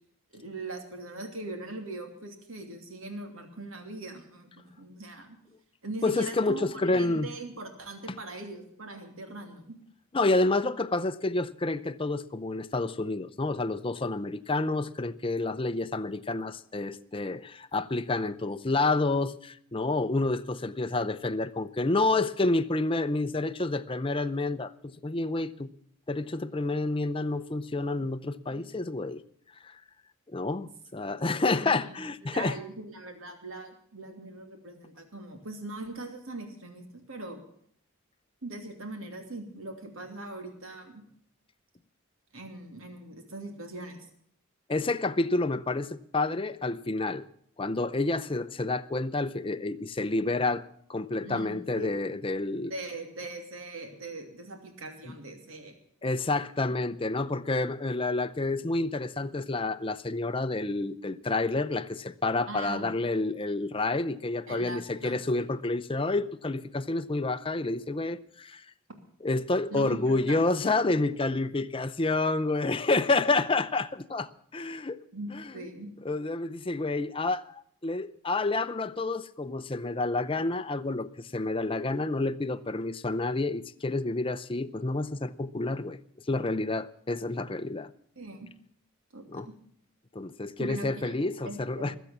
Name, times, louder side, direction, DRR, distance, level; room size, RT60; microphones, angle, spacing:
voice 1, 0.3-5.4 5.8-9.8 28.5-28.6 31.0-31.1 31.6-37.4 38.4-41.0 42.3-44.1 51.2-51.9 52.7-55.7 62.5-62.8 64.5-65.5 69.7-70.7 75.1-75.9 88.2-88.5 89.1-89.5 90.6-92.0, right 2 dB, 70° right, 2.8 m, -41 dB
voice 2, 6.0-7.3 10.1-25.7 26.1-29.2 29.6-29.8 30.3-32.6 44.7-47.3 47.6-50.6 50.9-52.7 55.0-55.1 56.0-68.6 69.2-75.0 75.3-75.5 76.0-86.0 86.3-87.9 89.3-89.5 90.1-92.0, left 2 dB, 25° left, 0.6 m, -29 dB
20.5 x 8.1 x 7.4 m
head